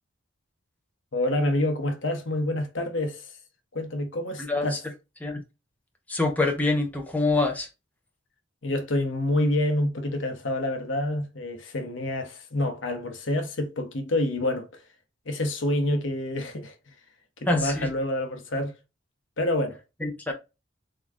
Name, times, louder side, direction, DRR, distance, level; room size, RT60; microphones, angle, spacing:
voice 1, 1.1-3.3 3.7-4.8 8.6-14.8 15.3-16.7 17.5-18.7 19.4-19.8, left 1 dB, 65° left, 0.9 m, -27 dB
voice 2, 6.1-7.7 17.5-17.9 20.0-20.3, left 2 dB, 10° left, 0.6 m, -25 dB
3.8 x 2.2 x 3.5 m
head